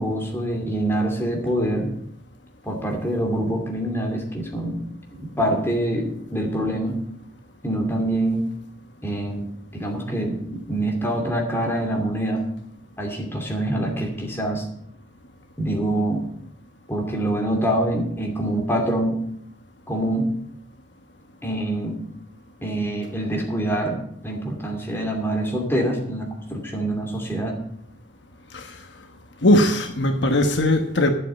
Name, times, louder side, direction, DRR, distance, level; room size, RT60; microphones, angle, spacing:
voice 1, 0.0-1.9 2.6-4.8 5.1-7.0 7.6-8.5 9.0-9.5 9.7-12.5 13.0-14.6 15.6-16.2 16.9-19.2 19.9-20.3 21.4-22.0 22.6-27.6, right 1 dB, 10° left, 2.7 m, -25 dB
voice 2, 29.4-31.1, left 1 dB, 65° left, 1.2 m, -19 dB
11.5 x 7.8 x 7.7 m
head